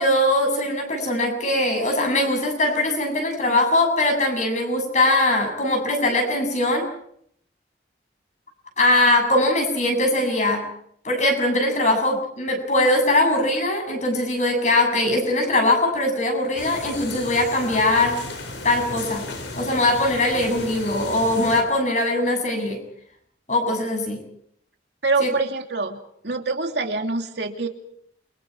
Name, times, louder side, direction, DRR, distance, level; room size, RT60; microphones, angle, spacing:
voice 1, 0.0-6.9 8.8-10.7 11.0-18.2 18.6-19.3 19.6-22.8 23.5-24.2 25.2-25.3, left 1 dB, 40° left, 4 dB, 7.3 m, -21 dB
sound 1, 16.6-21.6, left 2 dB, 85° left, 5.5 m, -34 dB
voice 2, 25.0-26.0 26.2-27.7, right 3 dB, 65° right, 3 dB, 2.6 m, -25 dB
29.0 x 24.0 x 4.8 m, 0.69 s
head